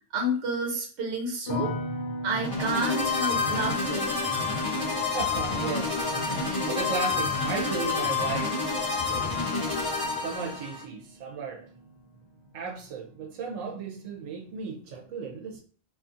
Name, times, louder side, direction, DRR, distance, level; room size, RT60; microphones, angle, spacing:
voice 1, 0.1-1.7 2.2-4.3, right 1 dB, 65° right, 1.0 m, -30 dB
sound 1, 1.5-12.5 12.8-13.5, equal, 55° left, 0.6 m, -40 dB
sound 2, 2.3-10.8, left 4 dB, 20° left, 0.8 m, -28 dB
voice 2, 4.8-8.7 9.0-9.5 10.2-11.7 12.5-15.6, right 5 dB, 90° right, 1.0 m, -36 dB
2.6 x 2.4 x 2.5 m
omnidirectional pair, 1.3 m